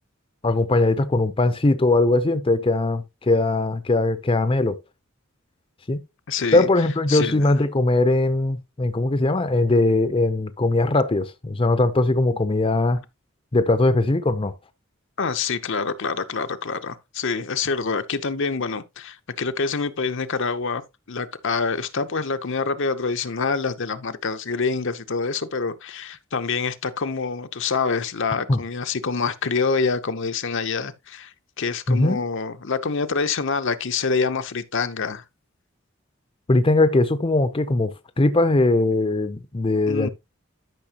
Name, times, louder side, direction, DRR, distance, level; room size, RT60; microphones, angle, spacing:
voice 1, 0.4-4.8 5.9-6.0 6.5-13.0 13.5-14.5 28.5-28.6 31.9-32.2 36.5-40.1, left 2 dB, 25° left, 0.6 m, -20 dB
voice 2, 6.3-6.7 7.1-7.5 15.2-20.8 21.1-35.2 39.9-40.1, left 4 dB, 65° left, 0.8 m, -26 dB
12.5 x 5.9 x 2.9 m
head